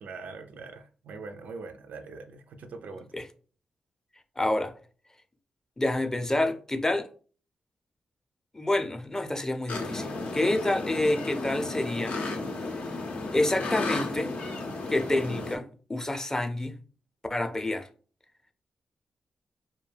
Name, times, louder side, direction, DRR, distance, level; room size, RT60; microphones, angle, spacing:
voice 1, 0.0-3.1, right 4 dB, 75° right, 0.3 m, -42 dB
voice 2, 4.4-4.7 5.8-7.1 8.5-12.3 13.3-14.3 14.9-16.8 17.3-17.9, left 1 dB, 20° left, 0.5 m, -28 dB
sound 1, 9.7-15.6, left 3 dB, 70° left, 0.5 m, -33 dB
2.2 x 2.2 x 3.2 m
supercardioid pair, 40°, 3 cm